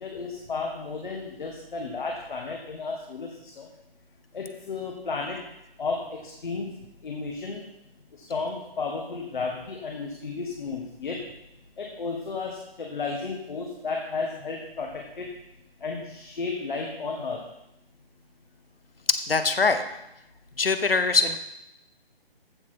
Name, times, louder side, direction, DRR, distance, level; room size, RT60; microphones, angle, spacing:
voice 1, 0.0-3.7 4.3-5.4 5.8-7.6 8.3-11.2 11.8-15.3 15.8-17.4, left 4 dB, 50° left, 1 dB, 1.5 m, -33 dB
voice 2, 19.1-19.8 20.6-21.4, left 4 dB, 70° left, 10 dB, 1.1 m, -22 dB
14.5 x 6.2 x 4.4 m, 0.86 s
figure-of-eight pair, 145°, 30 cm